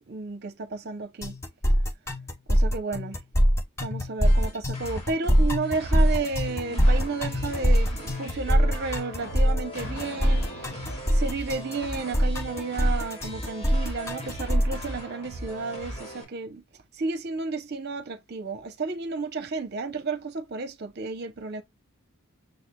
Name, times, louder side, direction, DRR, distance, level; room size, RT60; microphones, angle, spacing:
voice 1, 0.1-1.3 2.5-3.2 3.8-10.5 11.2-16.6 17.0-21.6, right 4 dB, 45° right, 0.7 m, -32 dB
sound 1, 1.2-14.8, equal, 10° left, 0.4 m, -23 dB
sound 2, 4.2-16.2, right 1 dB, 30° left, 1.7 m, -39 dB
sound 3, 6.6-14.1, left 1 dB, 80° left, 2.1 m, -45 dB
6.4 x 3.2 x 2.2 m
head